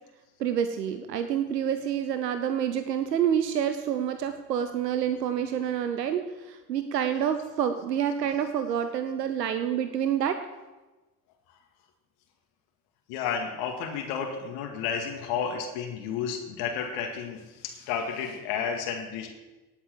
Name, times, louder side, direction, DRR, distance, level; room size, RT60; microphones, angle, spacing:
voice 1, 0.4-10.4, right 9 dB, 85° right, 9 dB, 0.8 m, -28 dB
voice 2, 13.1-19.3, left 7 dB, 65° left, 3 dB, 2.1 m, -32 dB
18.5 x 8.3 x 6.6 m, 1.2 s
figure-of-eight pair, 50°, 48 cm